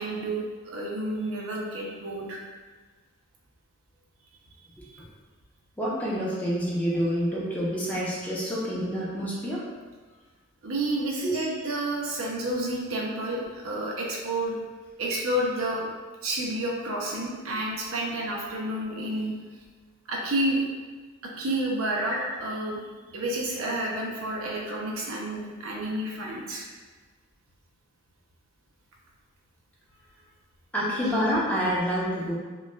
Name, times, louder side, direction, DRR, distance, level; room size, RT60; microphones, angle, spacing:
voice 1, 0.0-2.4 10.6-14.5 15.0-15.9 16.2-19.3 20.1-20.6 21.4-22.8 23.1-26.7, right 1 dB, 85° right, -2 dB, 0.7 m, -30 dB
voice 2, 5.8-9.6 11.2-11.4 22.1-22.2 30.7-32.3, equal, 5° left, -7 dB, 0.7 m, -27 dB
5.2 x 2.3 x 2.3 m, 1.4 s
head